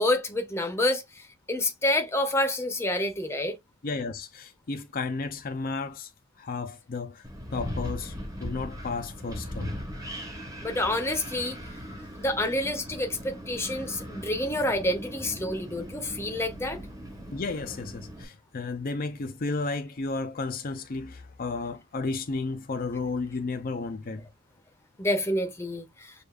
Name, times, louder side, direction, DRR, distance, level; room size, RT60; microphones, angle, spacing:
voice 1, 0.0-3.6 10.6-11.6 12.2-16.8 25.0-26.1, left 1 dB, 10° left, 0.8 m, -28 dB
voice 2, 3.8-6.1 6.4-7.3 7.5-8.1 8.4-9.7 17.3-24.2, left 3 dB, 40° left, 0.6 m, -33 dB
Wind, 7.2-18.2, equal, 15° right, 1.0 m, -39 dB
6.6 x 2.5 x 2.4 m
head